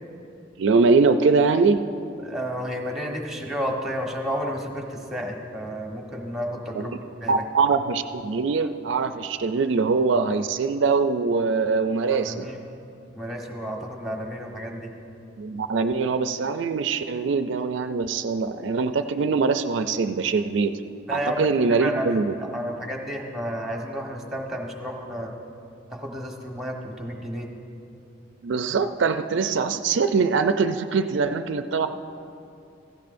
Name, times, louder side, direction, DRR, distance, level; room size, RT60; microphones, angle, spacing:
voice 1, 0.6-1.8 6.8-6.9 7.3-12.5 15.4-20.7 21.1-22.3 28.4-31.9, right 4 dB, 65° right, 9 dB, 0.4 m, -23 dB
voice 2, 2.2-7.4 12.1-12.6 13.1-14.9 21.1-25.3 25.9-27.5, equal, ahead, 0 dB, 1.2 m, -31 dB
16.0 x 15.0 x 2.6 m, 2.7 s
head